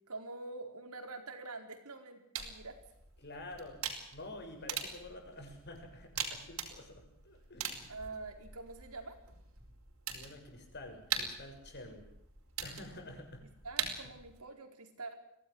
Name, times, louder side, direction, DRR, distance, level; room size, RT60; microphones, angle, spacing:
voice 1, 0.1-2.8 7.9-9.2 13.6-15.1, right 3 dB, 85° right, 5 dB, 4.5 m, -45 dB
sound 1, 2.4-14.4, right 7 dB, 65° right, 4.9 m, -43 dB
voice 2, 3.2-7.9 10.1-12.1 12.6-13.5, left 1 dB, 50° left, 4 dB, 7.1 m, -49 dB
24.0 x 17.5 x 8.0 m, 0.76 s
head